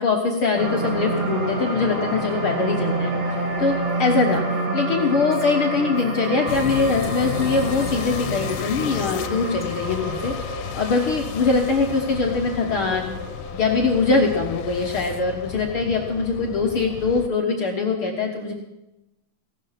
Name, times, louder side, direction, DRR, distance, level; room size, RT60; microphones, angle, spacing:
voice 1, 0.0-3.1 3.6-4.4 4.7-10.3 10.7-13.1 13.5-18.5, left 4 dB, 55° left, 2 dB, 1.6 m, -22 dB
sound 1, 0.6-17.0 17.5-17.6, right 2 dB, 85° right, 4.1 m, -29 dB
Female speech woman speaking, 3.3-10.3, right 1 dB, 5° right, 1.6 m, -42 dB
sound 2, 6.5-17.3, left 11 dB, 85° left, 2.3 m, -33 dB
17.0 x 12.0 x 5.8 m, 0.97 s
omnidirectional pair, 3.8 m